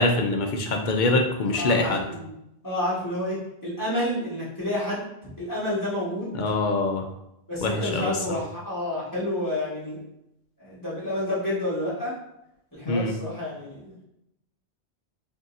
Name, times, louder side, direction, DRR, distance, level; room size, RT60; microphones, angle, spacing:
voice 1, 0.0-2.1 6.3-7.0 7.6-8.4 12.9-13.1, left 2 dB, 55° left, 3 dB, 0.6 m, -24 dB
voice 2, 1.5-2.3 2.6-5.0 5.4-6.4 7.5-10.0 10.6-12.1 12.7-13.9, left 1 dB, 15° left, -9 dB, 1.5 m, -29 dB
5.2 x 2.7 x 2.6 m, 0.83 s
omnidirectional pair, 1.2 m